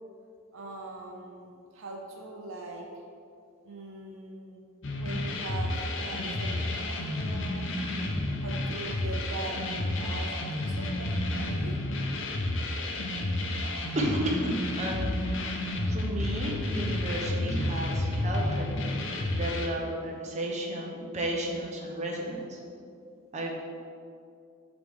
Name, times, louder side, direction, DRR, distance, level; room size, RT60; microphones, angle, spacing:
voice 1, 0.5-2.9 3.6-4.6 5.0-7.7 8.4-11.8, right 2 dB, 65° right, 0 dB, 0.8 m, -41 dB
sound 1, 4.8-19.7, left 1 dB, 60° left, 0.7 m, -31 dB
voice 2, 13.9-22.6 23.3-23.6, right 1 dB, 35° right, -1 dB, 0.8 m, -33 dB
7.9 x 4.0 x 3.6 m, 2.4 s
head